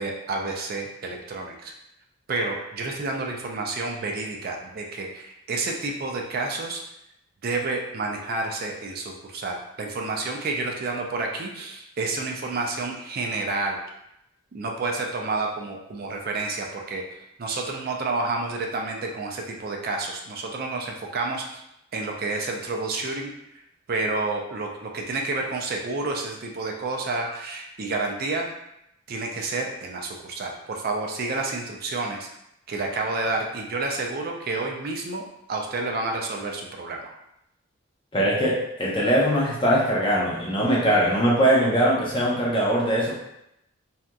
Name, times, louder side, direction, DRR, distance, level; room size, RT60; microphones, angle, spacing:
voice 1, 0.0-1.7 2.3-6.8 7.4-13.8 14.5-17.0 17.4-21.6 21.9-23.3 23.9-28.5 29.1-32.3 32.7-35.2 35.5-37.1, right 3 dB, 45° right, 1 dB, 0.4 m, -29 dB
voice 2, 38.1-43.1, equal, 25° left, -5 dB, 0.5 m, -21 dB
2.8 x 2.4 x 2.2 m, 0.82 s
head